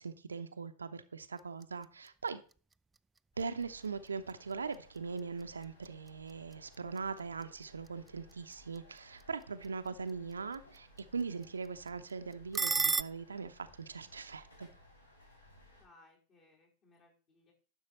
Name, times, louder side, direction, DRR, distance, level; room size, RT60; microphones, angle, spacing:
voice 1, 0.0-2.4 3.4-14.7, right 5 dB, 75° right, 0.7 m, -41 dB
sound 1, 1.2-13.0, right 4 dB, 15° right, 0.3 m, -42 dB
sound 2, 3.3-15.8, left 1 dB, 80° left, 3.0 m, -61 dB
voice 2, 15.8-17.5, left 3 dB, 35° left, 4.6 m, -64 dB
11.0 x 6.5 x 4.3 m
figure-of-eight pair, 90°, 0 cm